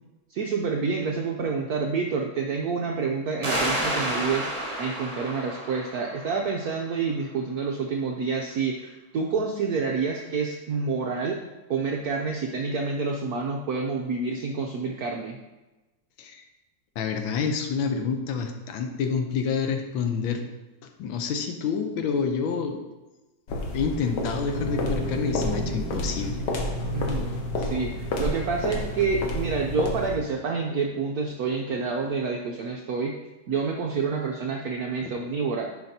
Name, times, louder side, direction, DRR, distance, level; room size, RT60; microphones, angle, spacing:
voice 1, 0.3-11.4 11.7-15.4 26.9-33.1 33.5-35.7, right 4 dB, 75° right, 1 dB, 0.8 m, -28 dB
sound 1, 3.4-6.8, right 1 dB, 20° right, 0.8 m, -30 dB
voice 2, 17.0-20.4 20.8-22.8 23.7-26.4, left 5 dB, 80° left, 5 dB, 1.5 m, -28 dB
sound 2, 23.5-30.3, left 2 dB, 65° left, 1.4 m, -30 dB
sound 3, 24.5-32.1, right 1 dB, 50° left, 1.8 m, -39 dB
10.5 x 5.2 x 2.7 m, 1.1 s
omnidirectional pair, 2.3 m